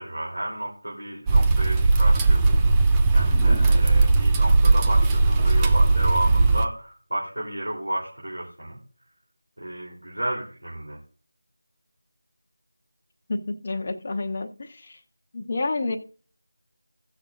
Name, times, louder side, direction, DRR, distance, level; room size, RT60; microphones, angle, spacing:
voice 1, 0.0-2.7 3.1-8.8 9.6-11.0, right 1 dB, 75° right, 3.3 m, -32 dB
sound 1, 1.3-6.7, right 3 dB, 10° right, 0.4 m, -18 dB
voice 2, 13.3-15.0 15.3-16.0, left 3 dB, 30° left, 0.9 m, -29 dB
17.0 x 6.4 x 2.5 m
figure-of-eight pair, 170°, 0 cm